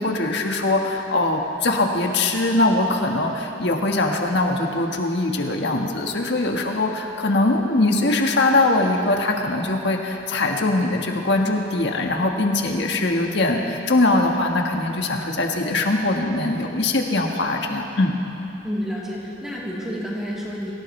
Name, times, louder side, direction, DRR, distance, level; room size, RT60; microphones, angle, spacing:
voice 1, 0.0-18.2, left 2 dB, 65° left, 2 dB, 1.5 m, -22 dB
voice 2, 18.6-20.7, equal, 5° right, -7 dB, 3.4 m, -29 dB
25.5 x 16.0 x 3.3 m, 3.0 s
head